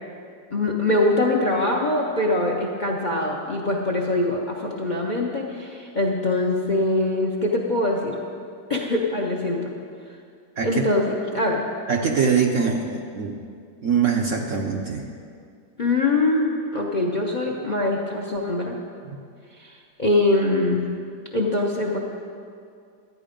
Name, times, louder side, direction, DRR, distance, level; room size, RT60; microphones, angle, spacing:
voice 1, 0.5-8.2 8.7-9.7 10.6-11.6 15.8-18.8 19.6-20.9 21.3-22.0, left 2 dB, 40° left, 0 dB, 0.7 m, -23 dB
voice 2, 11.9-13.4 13.8-15.1, right 6 dB, 60° right, 1 dB, 0.9 m, -23 dB
12.0 x 9.4 x 5.1 m, 2.3 s
omnidirectional pair, 1.9 m